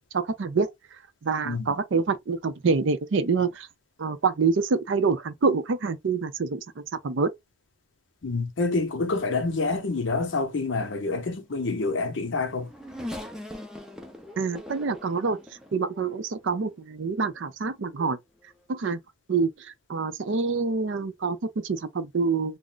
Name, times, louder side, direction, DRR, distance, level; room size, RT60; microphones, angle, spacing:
voice 1, 0.1-0.7 1.2-3.7 4.0-7.3 14.4-15.4 15.7-18.2 18.7-19.0 19.3-22.6, right 4 dB, 60° right, 0.5 m, -26 dB
voice 2, 1.4-1.7 8.2-12.7, left 3 dB, 60° left, 0.6 m, -27 dB
Race car auto racing / Accelerating revving vroom, 11.9-16.5 17.2-17.3 18.4-18.6, left 1 dB, 5° right, 0.4 m, -41 dB
2.4 x 2.0 x 3.8 m
head